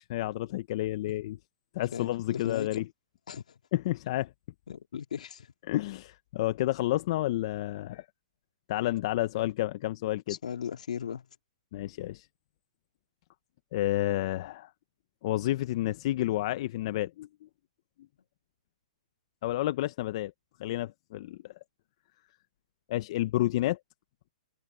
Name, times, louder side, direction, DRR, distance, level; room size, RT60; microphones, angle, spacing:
voice 1, 0.0-1.4 1.7-2.8 3.7-4.3 5.7-8.1 8.7-10.4 11.7-12.3 13.7-14.7 15.2-17.5 19.4-20.3 20.6-21.5 22.9-23.8, left 15 dB, 50° left, 1.0 m, -30 dB
voice 2, 1.9-2.8 3.3-3.6 4.7-5.5 10.3-11.3, left 8 dB, 75° left, 2.4 m, -37 dB
hypercardioid pair, 135°, 4 cm